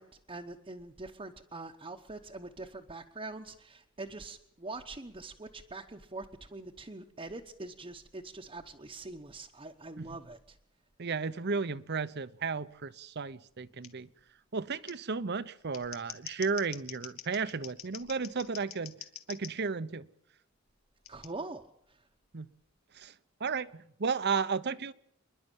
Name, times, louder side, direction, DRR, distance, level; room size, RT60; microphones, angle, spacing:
voice 1, 0.0-10.6 21.1-21.6 21.9-22.0, right 2 dB, 25° right, 1.0 m, -44 dB
voice 2, 11.0-14.1 14.5-18.9 19.3-20.1 22.3-22.5 22.9-23.1 23.4-24.9, right 5 dB, 50° right, 0.8 m, -33 dB
Scissors, 13.8-13.9 14.9-15.0 15.6-19.5 21.0-21.3, left 11 dB, 80° left, 1.6 m, -45 dB
27.0 x 11.0 x 9.0 m
head